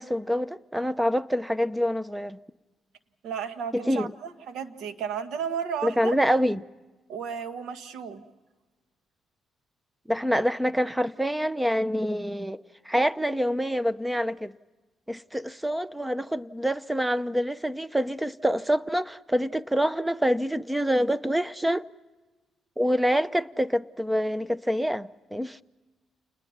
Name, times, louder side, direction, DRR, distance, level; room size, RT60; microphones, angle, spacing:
voice 1, 0.0-2.4 3.7-4.1 5.8-6.6 10.1-12.6 12.8-14.5 15.1-21.9 22.8-25.6, equal, 5° right, 0.7 m, -26 dB
voice 2, 3.2-6.1 7.1-8.2, right 7 dB, 80° right, 1.5 m, -33 dB
28.5 x 21.0 x 5.8 m
cardioid pair, 90°, 0 cm